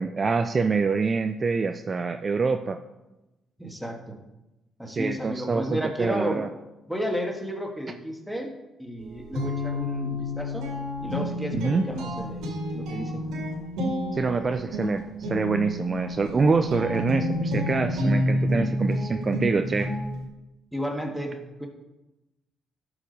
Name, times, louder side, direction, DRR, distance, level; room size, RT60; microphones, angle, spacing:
voice 1, 0.0-2.8 4.9-6.5 11.6-11.8 14.1-19.9, right 4 dB, 35° right, 8 dB, 0.5 m, -25 dB
voice 2, 3.6-4.2 4.8-6.4 6.9-8.5 8.8-10.7 11.0-13.2 20.7-21.7, equal, ahead, 2 dB, 1.7 m, -32 dB
Guitar, 9.0-20.2, left 1 dB, 90° right, 2.1 m, -29 dB
12.5 x 4.9 x 5.3 m, 0.99 s
cardioid pair, 90°, 0 cm